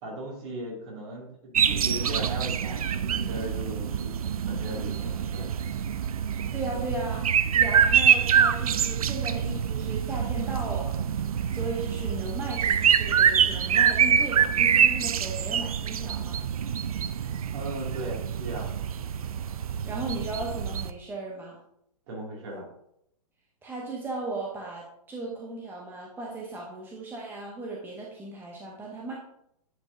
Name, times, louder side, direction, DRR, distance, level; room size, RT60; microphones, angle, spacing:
voice 1, 0.0-1.3 1.6-4.1 4.4-5.5 17.5-18.7 22.1-22.6, right 1 dB, 45° right, -2 dB, 2.5 m, -37 dB
sound 1, 1.5-20.9, right 8 dB, 75° right, 0.4 m, -25 dB
voice 2, 6.5-7.2 7.5-10.9 11.5-16.4 19.9-21.6 23.6-29.1, right 2 dB, 10° right, -2 dB, 0.8 m, -36 dB
9.5 x 4.5 x 2.7 m, 0.75 s
figure-of-eight pair, 115°, 19 cm